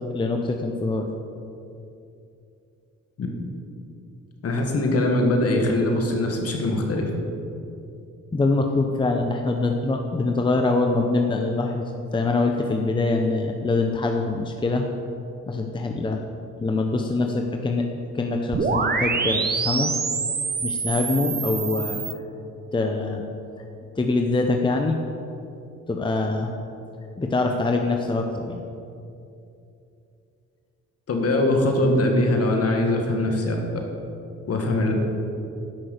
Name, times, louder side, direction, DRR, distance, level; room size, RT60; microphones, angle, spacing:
voice 1, 0.1-1.1 8.3-14.8 15.5-16.2 16.6-17.9 18.1-19.9 20.6-22.0 22.7-23.2 24.0-25.0 25.9-26.5 27.2-28.6, left 3 dB, 15° left, 3 dB, 0.8 m, -24 dB
voice 2, 4.4-7.1 31.1-33.6 34.5-34.9, left 1 dB, 50° left, 2 dB, 1.9 m, -22 dB
sound 1, 18.5-22.1, right 4 dB, 30° right, 0.9 m, -26 dB
10.0 x 6.2 x 6.5 m, 2.7 s
cardioid pair, 90°, 30 cm